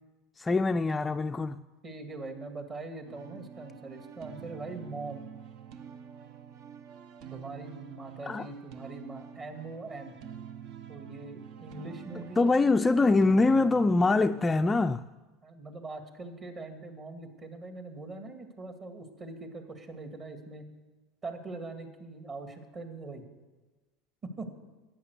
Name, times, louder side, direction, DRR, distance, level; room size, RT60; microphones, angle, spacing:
voice 1, 0.4-1.6 8.3-8.5 12.4-15.0, left 3 dB, 15° left, 0.4 m, -24 dB
voice 2, 1.8-5.3 7.3-10.1 10.9-12.5 15.4-20.7 21.2-23.2 24.2-24.5, right 3 dB, 30° right, 2.3 m, -42 dB
sound 1, 3.1-14.7, right 8 dB, 60° right, 0.9 m, -47 dB
11.5 x 9.3 x 8.2 m
supercardioid pair, 105°, 0 cm